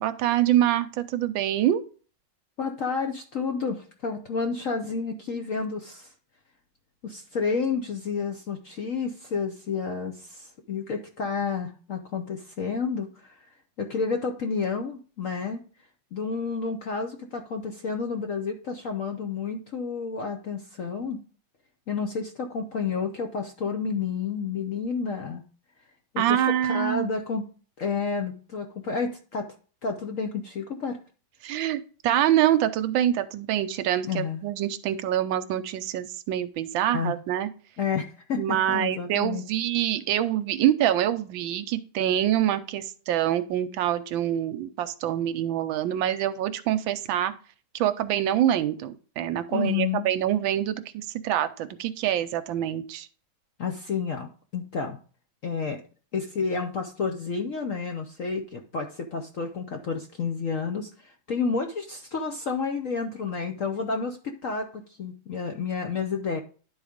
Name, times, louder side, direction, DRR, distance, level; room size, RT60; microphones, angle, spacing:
voice 1, 0.0-1.8 26.2-27.1 31.4-37.5 38.4-47.3 47.7-53.1, right 11 dB, 75° right, 12 dB, 1.3 m, -25 dB
voice 2, 2.6-6.1 7.0-13.5 13.8-15.6 16.1-21.2 21.9-25.4 26.1-27.4 27.8-29.5 29.8-31.0 34.1-34.4 36.8-37.1 37.8-39.4 49.5-50.1 53.6-54.3 54.5-55.0 55.4-55.8 56.1-66.4, left 5 dB, 60° left, 4 dB, 0.8 m, -30 dB
11.0 x 4.0 x 5.0 m, 0.40 s
omnidirectional pair, 2.2 m